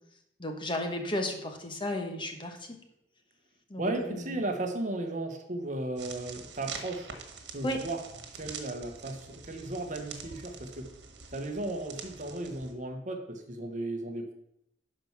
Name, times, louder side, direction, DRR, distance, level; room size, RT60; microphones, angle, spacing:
voice 1, 0.4-2.6 3.7-4.4 7.6-7.8, left 1 dB, 30° left, 4 dB, 1.1 m, -33 dB
voice 2, 3.8-7.1 7.5-8.0 8.3-10.9 11.3-14.3, right 2 dB, 45° right, 4 dB, 1.2 m, -35 dB
sound 1, 6.0-12.7, right 5 dB, 85° right, 1.5 m, -45 dB
11.5 x 4.6 x 5.9 m, 0.79 s
head